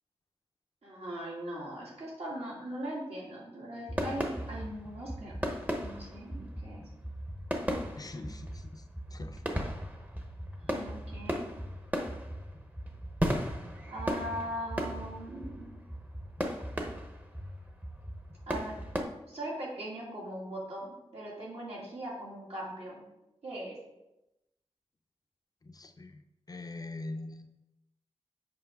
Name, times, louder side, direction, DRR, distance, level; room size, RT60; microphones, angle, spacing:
voice 1, 0.8-5.3 5.8-6.8 10.6-11.5 13.9-15.7 18.5-18.7 19.3-23.0 23.4-23.8, right 1 dB, 70° right, -5 dB, 2.4 m, -40 dB
sound 1, 3.9-19.0, equal, 15° right, 0.8 m, -36 dB
voice 2, 8.0-9.7 25.6-27.5, left 2 dB, 35° left, 6 dB, 0.5 m, -43 dB
7.7 x 5.1 x 3.6 m, 0.93 s
wide cardioid pair, 125°, 11 cm